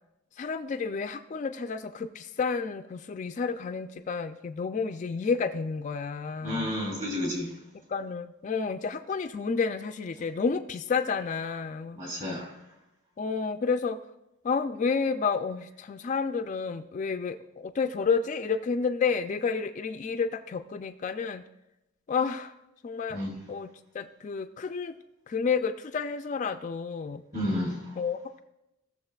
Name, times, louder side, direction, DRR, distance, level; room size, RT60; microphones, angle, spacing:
voice 1, 0.4-6.7 7.9-12.0 13.2-14.0 14.4-21.4 22.1-22.5 22.8-23.2 23.5-23.7 23.9-25.0 25.3-27.2 28.0-28.4, left 5 dB, 35° left, 9 dB, 0.3 m, -30 dB
voice 2, 6.4-7.5 11.9-12.5 23.1-23.3 27.3-28.0, left 1 dB, 40° right, -2 dB, 3.1 m, -31 dB
16.5 x 6.9 x 2.3 m, 0.90 s
head